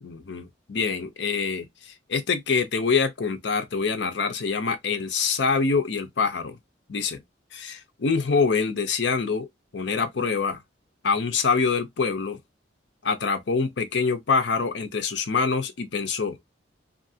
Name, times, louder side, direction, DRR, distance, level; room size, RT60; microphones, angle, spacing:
voice 1, 0.0-6.6 6.9-7.2 7.5-9.5 9.7-10.6 11.0-12.4 13.0-16.4, left 5 dB, 60° left, 0.6 m, -25 dB
2.7 x 2.5 x 2.6 m
head